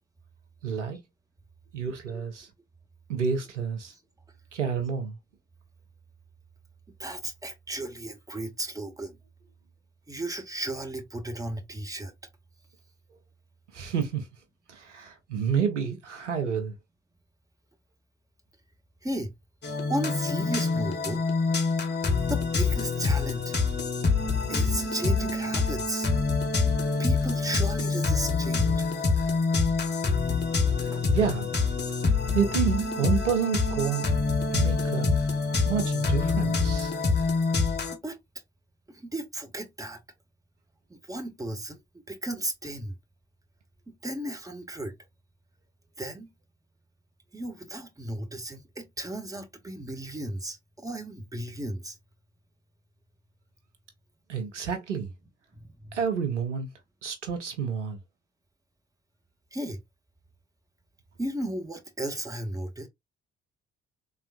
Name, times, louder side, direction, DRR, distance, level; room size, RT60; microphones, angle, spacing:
voice 1, 0.6-1.0 1.7-2.5 3.1-3.9 4.5-5.2 13.7-14.3 14.7-16.7 31.1-31.5 32.3-34.1 34.5-35.2 35.7-36.9 54.3-55.1 55.9-56.7 57.0-58.0, right 7 dB, 85° right, 0.5 m, -29 dB
voice 2, 7.0-9.2 10.1-12.1 19.0-19.3 19.9-21.2 22.3-23.6 24.5-26.1 27.0-28.9 30.9-31.0 37.9-38.2 38.9-40.0 40.9-41.8 42.1-43.0 43.9-44.9 46.0-46.3 47.3-52.0 55.5-56.0 59.5-59.8 61.2-62.9, right 1 dB, 10° right, 0.8 m, -35 dB
sound 1, 19.6-38.0, left 4 dB, 30° left, 0.8 m, -26 dB
3.3 x 2.3 x 2.4 m
figure-of-eight pair, 40°, 35 cm